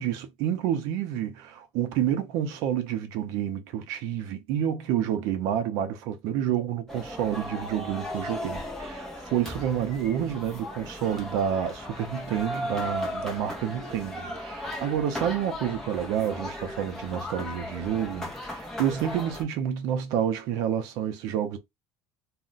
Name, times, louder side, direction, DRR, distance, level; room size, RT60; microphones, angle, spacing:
voice 1, 0.0-21.6, right 9 dB, 55° right, 0.4 m, -29 dB
sound 1, 6.9-19.4, left 1 dB, 5° left, 0.5 m, -37 dB
2.4 x 2.0 x 3.7 m
cardioid pair, 180°, 7 cm